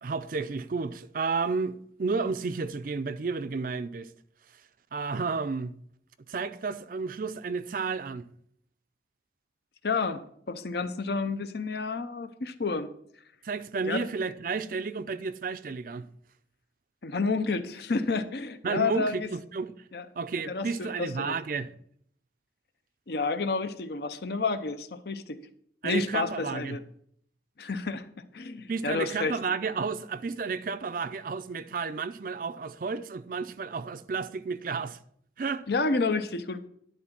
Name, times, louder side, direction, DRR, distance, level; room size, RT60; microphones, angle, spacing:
voice 1, 0.0-4.1 4.9-5.7 6.3-8.2 13.4-16.1 18.6-19.7 20.2-21.7 25.8-26.8 28.7-35.0 35.4-35.7, right 4 dB, 50° right, 0.4 m, -32 dB
voice 2, 9.8-10.2 10.5-12.9 13.8-14.1 17.0-19.3 19.9-20.1 20.5-21.4 23.1-25.4 25.8-26.8 27.6-29.4 35.7-36.7, left 4 dB, 60° left, 0.6 m, -30 dB
11.0 x 3.9 x 5.9 m
head